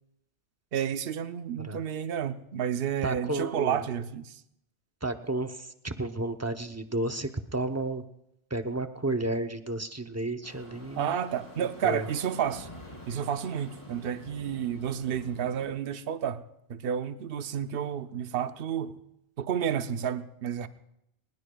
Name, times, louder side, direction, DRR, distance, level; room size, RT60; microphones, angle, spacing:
voice 1, 0.7-4.4 11.0-12.7 13.1-16.4 16.7-19.0 19.4-20.7, right 8 dB, 60° right, 10 dB, 0.9 m, -31 dB
voice 2, 3.0-3.8 5.0-8.0 8.5-11.2 11.8-12.1, right 2 dB, 15° right, 7 dB, 0.6 m, -32 dB
sound 1, 10.4-15.7, left 1 dB, 25° left, 3.4 m, -47 dB
22.5 x 20.5 x 2.3 m, 0.78 s
omnidirectional pair, 1.2 m